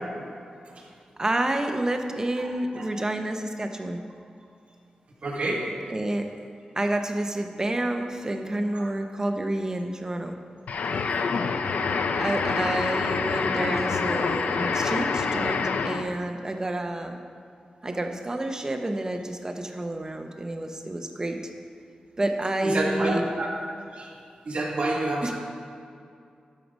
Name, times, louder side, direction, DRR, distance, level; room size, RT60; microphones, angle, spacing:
voice 1, 1.2-4.0 5.9-6.3 6.8-10.4 12.2-17.2 17.8-21.4 22.2-23.2 25.2-25.3, right 1 dB, 25° right, 5 dB, 0.8 m, -29 dB
voice 2, 2.4-3.0 5.2-5.9 8.7-8.9 13.5-13.6 14.6-14.7 17.8-18.0 22.6-23.5 23.9-25.3, right 2 dB, 55° right, -2 dB, 1.7 m, -30 dB
sound 1, 10.7-16.2, left 5 dB, 85° left, 0.4 m, -26 dB
12.5 x 4.9 x 5.3 m, 2.4 s
wide cardioid pair, 115°, 3 cm